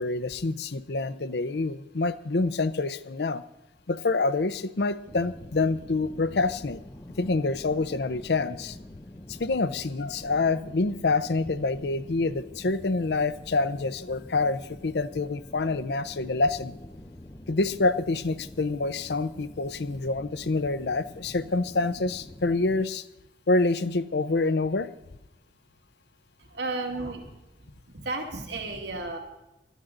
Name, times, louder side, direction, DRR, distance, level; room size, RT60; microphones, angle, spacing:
voice 1, 0.0-3.4 3.9-6.8 7.2-8.8 9.3-16.7 17.5-23.0 23.5-24.9, left 3 dB, 70° left, 14 dB, 0.6 m, -27 dB
sound 1, 5.1-22.9, left 1 dB, 20° left, 0.6 m, -46 dB
voice 2, 26.4-27.3 27.9-29.2, right 2 dB, 75° right, 2 dB, 2.2 m, -33 dB
18.5 x 13.0 x 3.8 m, 0.94 s
head